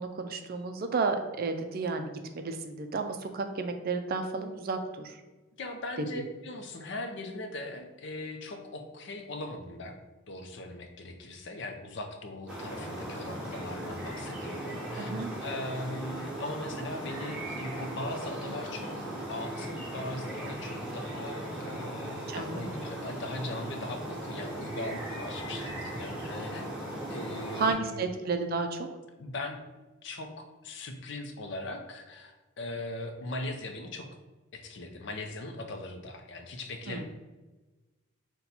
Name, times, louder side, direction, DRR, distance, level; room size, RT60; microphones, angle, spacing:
voice 1, 0.0-5.2 15.0-15.3 22.3-22.8 27.6-28.9 36.9-37.0, right 4 dB, 50° right, 7 dB, 0.4 m, -32 dB
voice 2, 5.6-10.0 10.3-15.1 15.4-28.1 29.2-29.6 30.0-34.1 34.5-37.0, left 2 dB, 60° left, 5 dB, 0.5 m, -40 dB
sound 1, 12.5-27.7, right 1 dB, 5° right, 0.9 m, -38 dB
4.2 x 2.2 x 4.0 m, 1.2 s
head